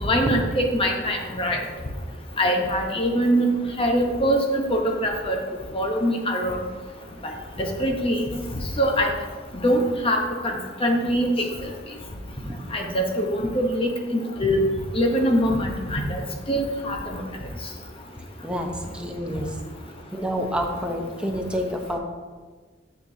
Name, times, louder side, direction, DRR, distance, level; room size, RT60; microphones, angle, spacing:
voice 1, 0.0-1.6 2.4-5.4 5.7-6.6 7.6-8.3 8.8-9.1 9.6-10.2 10.4-11.3 12.7-14.6 14.9-16.2 16.5-17.2, equal, 30° left, 1 dB, 1.0 m, -23 dB
voice 2, 18.9-19.5 20.1-22.0, equal, 5° right, 1 dB, 0.8 m, -28 dB
8.8 x 6.8 x 2.8 m, 1.4 s
head